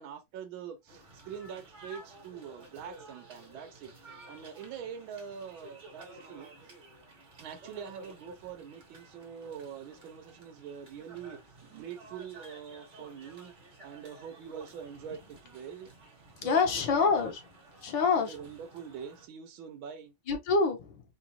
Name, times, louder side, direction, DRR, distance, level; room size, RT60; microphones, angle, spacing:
voice 1, 0.0-3.9 4.3-6.5 7.4-13.5 13.8-15.9 16.4-17.3 18.1-20.1, right 7 dB, 75° right, 1.5 m, -44 dB
sound 1, 0.9-19.3, right 2 dB, 30° right, 0.9 m, -53 dB
voice 2, 16.4-17.4 17.8-18.3 20.3-21.0, left 4 dB, 65° left, 1.4 m, -26 dB
4.4 x 2.5 x 2.7 m
omnidirectional pair, 2.3 m